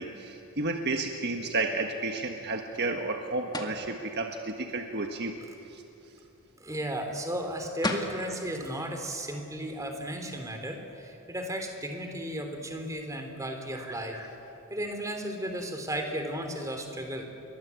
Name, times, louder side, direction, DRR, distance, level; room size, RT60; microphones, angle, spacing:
voice 1, 0.0-5.4 5.7-5.8, right 3 dB, 50° right, 4 dB, 1.5 m, -32 dB
sound 1, 3.5-3.8 7.5-7.6 7.8-8.2, left 2 dB, 20° left, 2.1 m, -31 dB
voice 2, 6.6-14.3 14.7-17.2, right 1 dB, 15° right, 4 dB, 3.3 m, -35 dB
29.5 x 23.5 x 8.4 m, 3.0 s
head